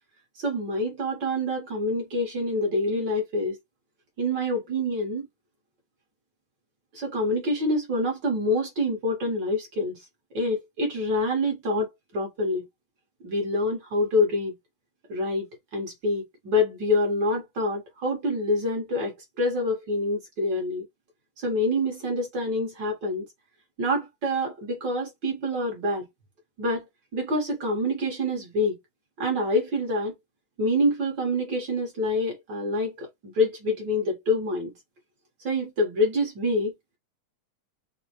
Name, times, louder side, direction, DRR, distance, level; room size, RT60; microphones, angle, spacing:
voice 1, 0.4-3.6 4.2-5.3 6.9-10.0 10.3-12.7 13.2-14.5 15.1-20.8 21.4-23.2 23.8-26.0 26.6-26.8 27.1-28.8 29.2-30.1 30.6-34.7 35.4-36.7, left 1 dB, 60° right, 1.2 m, -26 dB
5.0 x 2.1 x 2.8 m
omnidirectional pair, 3.5 m